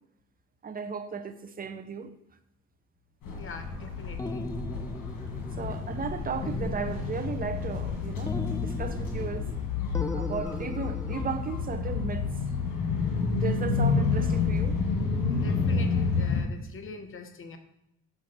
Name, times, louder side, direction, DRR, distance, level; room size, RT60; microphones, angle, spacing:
voice 1, 0.6-2.1 5.6-9.5 10.1-12.3 13.4-14.8, right 5 dB, 30° right, 0.7 m, -35 dB
sound 1, 3.2-16.4, left 4 dB, 85° left, 1.9 m, -29 dB
voice 2, 3.3-4.5 9.1-9.2 15.3-17.6, left 4 dB, 45° left, 1.0 m, -43 dB
sound 2, 4.2-6.1 6.4-7.9 8.3-9.6 9.9-11.3, left 2 dB, 10° left, 0.5 m, -37 dB
6.3 x 6.0 x 4.3 m
cardioid pair, 90°, 30 cm